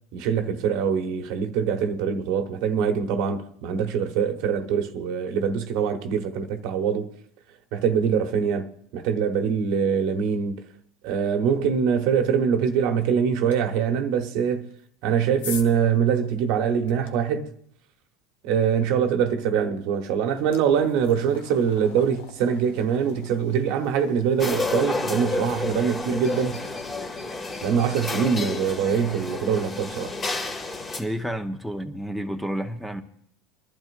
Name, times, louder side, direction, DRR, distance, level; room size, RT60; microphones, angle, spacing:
voice 1, 0.1-7.1 7.7-10.6 11.0-14.7 15.0-17.5 18.4-26.6 27.6-30.1, right 7 dB, 65° right, 1.1 m, -24 dB
sound 1, 13.5-13.6 14.7-17.1 19.4-19.5 20.0-31.0, left 6 dB, 80° left, 1.2 m, -46 dB
sound 2, 24.4-31.0, left 3 dB, 30° left, 2.0 m, -30 dB
voice 2, 31.0-33.0, equal, ahead, 0.9 m, -30 dB
25.0 x 11.5 x 2.6 m
supercardioid pair, 105°, 0 cm